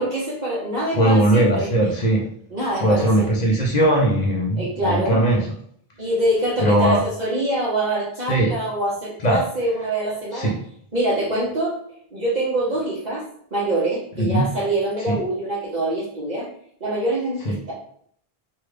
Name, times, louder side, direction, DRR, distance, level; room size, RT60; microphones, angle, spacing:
voice 1, 0.0-1.7 2.5-3.3 4.6-5.2 6.0-10.5 10.9-11.8 12.1-13.2 13.5-16.5 16.8-17.7, right 1 dB, 45° right, 1.0 m, -24 dB
voice 2, 0.9-2.3 2.8-5.6 6.6-7.0 8.3-8.6 9.2-9.4 10.3-10.7 14.2-14.4 15.1-15.2 17.5-17.6, right 1 dB, 50° left, 0.7 m, -19 dB
3.2 x 2.3 x 3.2 m
omnidirectional pair, 1.0 m